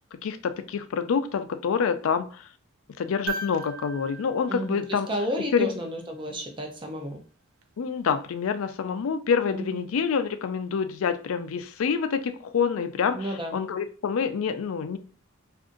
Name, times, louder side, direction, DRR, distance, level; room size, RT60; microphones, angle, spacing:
voice 1, 0.1-2.4 3.0-5.1 5.5-5.7 7.8-15.0, left 6 dB, 80° left, 10 dB, 0.4 m, -27 dB
sound 1, 3.3-5.6 7.6-7.7, right 5 dB, 85° right, 0.5 m, -38 dB
voice 2, 4.5-7.2 9.5-9.9 13.1-13.6, equal, 25° right, 2 dB, 0.5 m, -32 dB
2.5 x 2.5 x 3.7 m, 0.40 s
head